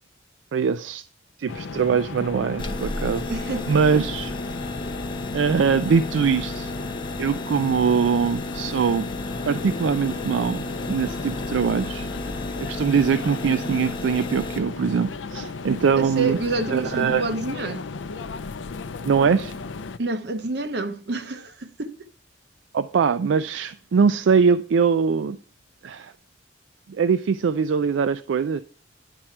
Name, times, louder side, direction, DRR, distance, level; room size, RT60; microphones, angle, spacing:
voice 1, 0.5-1.0 1.4-3.3 3.7-4.3 5.3-6.7 7.2-9.1 9.5-12.1 12.6-16.4 16.7-17.2 19.0-19.6 22.7-25.4 25.8-26.1 26.9-28.6, right 6 dB, 75° right, 0.4 m, -22 dB
sound 1, 1.5-20.0, left 4 dB, 75° left, 0.5 m, -35 dB
sound 2, 2.6-14.6, left 2 dB, 25° left, 1.0 m, -33 dB
voice 2, 3.3-3.8 16.0-17.9 20.0-22.0, right 3 dB, 60° right, 0.9 m, -28 dB
10.0 x 4.4 x 5.9 m
head